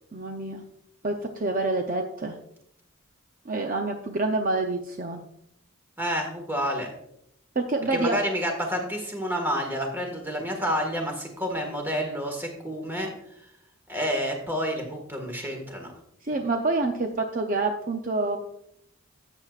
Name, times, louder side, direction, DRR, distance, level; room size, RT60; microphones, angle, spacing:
voice 1, 0.1-0.6 1.0-2.4 3.5-5.2 7.6-8.2 16.2-18.4, right 2 dB, 40° right, 3 dB, 0.6 m, -27 dB
voice 2, 6.0-6.9 7.9-13.1 13.9-15.9, equal, 10° right, 2 dB, 1.7 m, -29 dB
13.0 x 8.0 x 2.4 m, 0.74 s
head